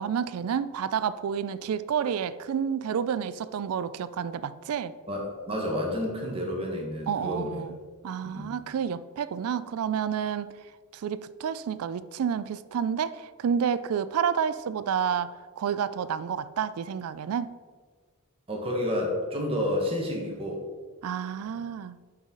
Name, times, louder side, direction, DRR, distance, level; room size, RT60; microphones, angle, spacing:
voice 1, 0.0-4.9 7.1-7.8 8.0-10.5 10.9-17.6 21.0-22.0, right 7 dB, 75° right, 15 dB, 0.3 m, -30 dB
voice 2, 5.1-7.6 8.2-8.5 18.5-20.6 21.4-21.6, left 1 dB, 25° right, -1 dB, 1.4 m, -30 dB
7.1 x 5.5 x 3.8 m, 1.5 s
head